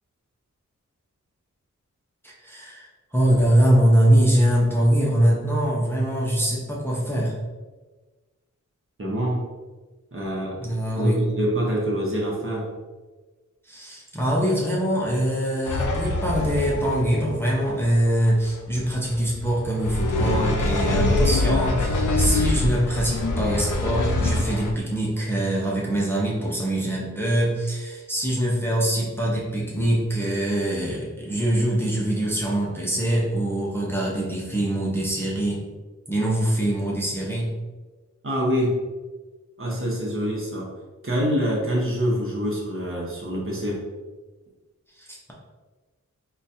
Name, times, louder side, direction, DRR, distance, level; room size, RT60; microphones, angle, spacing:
voice 1, 2.2-7.3 10.6-11.3 13.7-35.7 36.1-37.5 45.0-45.3, right 1 dB, 5° left, -5 dB, 0.6 m, -23 dB
voice 2, 9.0-9.4 10.1-10.6 11.0-12.6 38.2-38.8 39.6-40.7 41.0-43.8, equal, 45° right, -3 dB, 0.9 m, -25 dB
sound 1, 15.6-24.7, left 2 dB, 75° left, 0.5 m, -24 dB
3.9 x 2.3 x 2.6 m, 1.3 s
wide cardioid pair, 70°, 31 cm